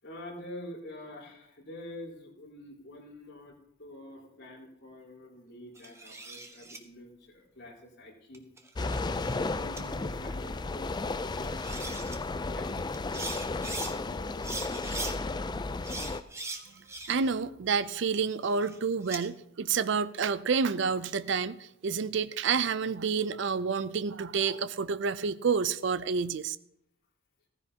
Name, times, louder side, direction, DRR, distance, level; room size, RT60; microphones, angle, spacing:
voice 1, 0.0-8.4 8.7-9.1 9.5-12.1 12.3-14.5, left 1 dB, 60° left, 4.2 m, -47 dB
sound 1, 5.8-6.8 8.3-9.4 9.8-9.9 11.2-11.3 11.5-12.2 12.9-13.9 14.4-15.1 15.8-17.4 17.7-19.2, right 3 dB, 15° right, 1.0 m, -41 dB
sound 2, 8.8-16.2, left 3 dB, 20° left, 0.4 m, -33 dB
voice 2, 17.1-21.6 21.8-26.6, right 5 dB, 65° right, 0.5 m, -29 dB
15.5 x 14.5 x 2.8 m
head